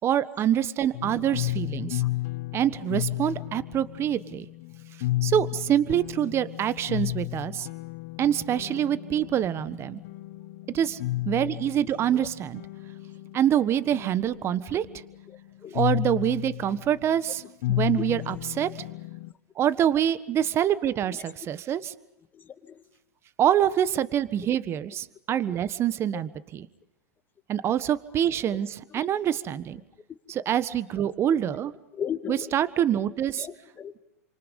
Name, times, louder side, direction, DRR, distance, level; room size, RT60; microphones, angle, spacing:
voice 1, 0.0-2.0 2.5-4.5 5.2-7.7 8.2-10.0 10.7-11.0 11.2-12.6 13.3-14.9 15.7-17.4 17.7-18.7 19.6-21.9 23.4-26.7 27.5-28.7 28.9-29.8 30.3-31.7 32.3-33.5, right 10 dB, 30° right, 1.4 m, -25 dB
sound 1, 0.9-19.3, left 17 dB, 55° left, 1.1 m, -33 dB
voice 2, 1.8-2.1 4.3-4.4 11.8-12.3 15.3-15.9 18.0-18.3 21.1-21.2 22.3-22.8 25.3-25.6 26.1-26.2 28.5-28.6 28.9-29.1 31.9-32.6 33.3-33.9, left 8 dB, 20° left, 2.0 m, -38 dB
28.5 x 26.5 x 5.3 m
hypercardioid pair, 105°, 9 cm